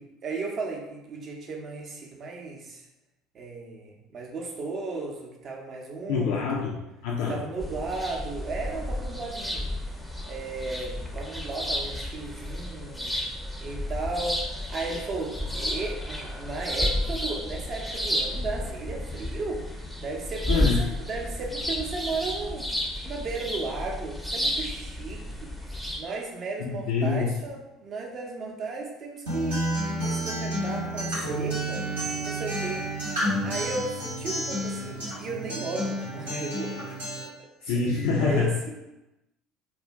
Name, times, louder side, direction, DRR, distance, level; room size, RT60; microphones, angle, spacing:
voice 1, 0.0-2.8 3.3-6.7 7.3-9.7 10.3-13.1 13.6-19.6 20.0-22.7 23.1-25.5 26.0-29.6 30.0-31.9 32.2-32.8 33.4-37.0 37.6-37.7 38.2-38.7, right 3 dB, 45° right, 0 dB, 0.6 m, -35 dB
voice 2, 6.1-7.4 20.5-20.9 26.6-27.4 37.6-38.6, left 5 dB, 70° left, -2 dB, 0.3 m, -26 dB
sound 1, 7.6-26.0, left 1 dB, ahead, 0.5 m, -32 dB
Acoustic guitar, 29.3-37.2, right 1 dB, 85° right, 0.8 m, -30 dB
2.5 x 2.1 x 3.3 m, 0.95 s
hypercardioid pair, 65°, 0 cm